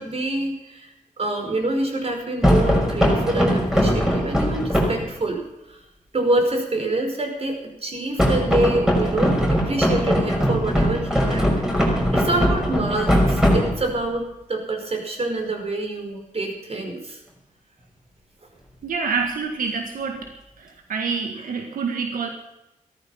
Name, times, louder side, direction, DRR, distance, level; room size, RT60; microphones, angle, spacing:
voice 1, 0.0-5.4 5.7-5.8 6.1-17.2 21.3-21.5, right 2 dB, 45° right, 3 dB, 5.1 m, -26 dB
sound 1, 2.4-5.1 8.2-14.1, equal, 5° right, 6.0 m, -20 dB
voice 2, 18.8-20.3 20.6-22.3, right 5 dB, 90° right, 4 dB, 1.8 m, -27 dB
16.0 x 13.5 x 5.7 m, 0.90 s
cardioid pair, 85°, 14 cm